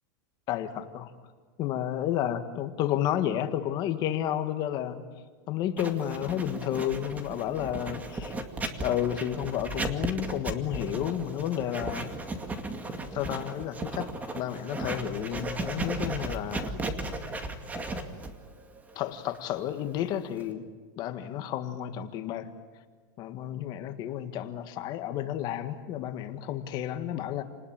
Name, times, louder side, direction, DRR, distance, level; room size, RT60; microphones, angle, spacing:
voice 1, 0.5-1.0 1.6-5.0 5.5-8.3 8.8-12.1 13.1-16.7 18.9-20.6 21.0-22.5 23.2-27.4, left 11 dB, 40° left, 9 dB, 1.7 m, -31 dB
Writing, 5.8-20.5, right 2 dB, 15° right, 2.2 m, -36 dB
29.0 x 20.0 x 8.9 m, 1.5 s
supercardioid pair, 145°, 11 cm